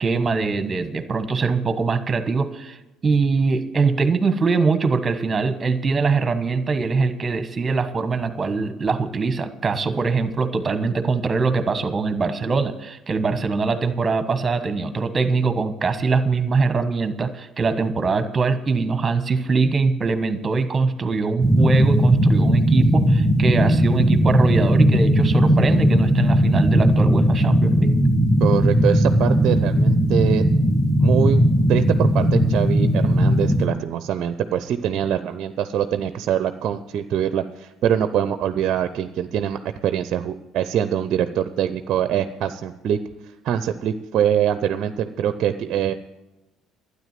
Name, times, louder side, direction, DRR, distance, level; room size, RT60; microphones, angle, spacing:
voice 1, 0.0-27.9, right 4 dB, 30° right, 10 dB, 1.3 m, -22 dB
sound 1, 21.4-33.7, equal, 5° right, 2.0 m, -18 dB
voice 2, 28.4-30.4 31.0-31.4 31.7-43.0 43.4-45.9, right 9 dB, 60° right, 11 dB, 0.7 m, -23 dB
12.0 x 9.8 x 7.5 m, 0.99 s
hypercardioid pair, 60°, 0 cm